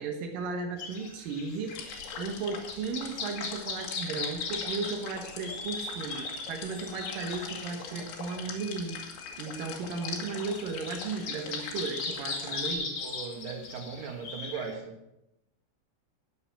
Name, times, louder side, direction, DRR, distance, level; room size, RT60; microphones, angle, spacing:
voice 1, 0.0-9.0 9.4-12.9, right 4 dB, 80° right, 3 dB, 2.0 m, -35 dB
sound 1, 0.8-14.7, left 4 dB, 45° left, 2.7 m, -39 dB
sound 2, 1.7-12.7, left 5 dB, 70° left, 4.0 m, -42 dB
voice 2, 13.0-15.0, right 5 dB, 60° right, 3 dB, 2.6 m, -38 dB
19.5 x 7.0 x 5.9 m, 0.89 s
omnidirectional pair, 5.9 m